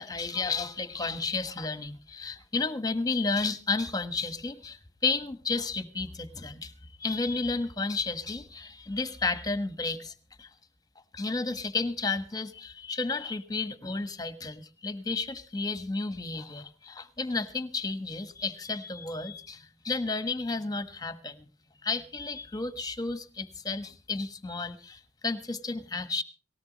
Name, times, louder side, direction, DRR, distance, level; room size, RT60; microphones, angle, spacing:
voice 1, 0.0-6.7 7.0-10.5 11.1-21.5 21.8-26.2, left 3 dB, 20° left, 11 dB, 1.3 m, -32 dB
19.0 x 17.5 x 3.0 m, 0.36 s
head